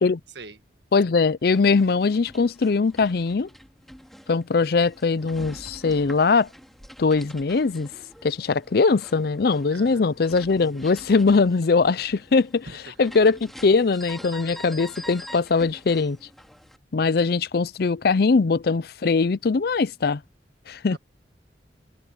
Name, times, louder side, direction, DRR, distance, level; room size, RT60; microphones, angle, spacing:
voice 1, 0.3-0.6 9.7-10.1 12.6-13.1 20.9-21.0, right 3 dB, 75° right, 1.6 m, -42 dB
voice 2, 0.9-3.5 4.3-6.5 7.0-7.9 8.2-12.7 13.0-16.2 16.9-20.2 20.7-21.0, left 4 dB, 60° left, 0.5 m, -21 dB
sound 1, 1.4-16.8, equal, ahead, 2.2 m, -45 dB
head